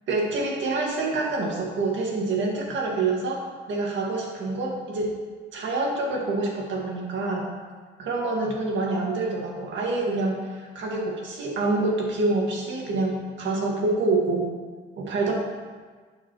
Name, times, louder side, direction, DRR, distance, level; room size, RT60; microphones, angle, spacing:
voice 1, 0.1-3.4 3.7-5.1 5.5-7.5 8.0-14.5 15.0-15.3, right 3 dB, 70° right, -1 dB, 1.9 m, -26 dB
11.0 x 5.9 x 3.1 m, 1.5 s
cardioid pair, 90°, 20 cm